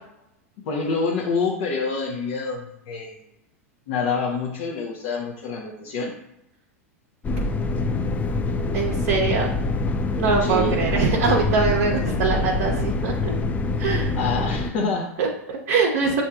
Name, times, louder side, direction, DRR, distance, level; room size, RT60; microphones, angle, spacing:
voice 1, 0.6-3.1 3.9-6.1 10.4-10.8 14.2-15.1, left 4 dB, 55° left, -1 dB, 0.8 m, -26 dB
sound 1, 7.2-14.7, left 3 dB, 20° left, 0.4 m, -25 dB
voice 2, 8.7-9.5 10.2-13.3 13.8-14.1 15.2-16.2, right 5 dB, 55° right, 0 dB, 0.7 m, -23 dB
7.3 x 2.6 x 2.3 m, 0.92 s
figure-of-eight pair, 90°, 8 cm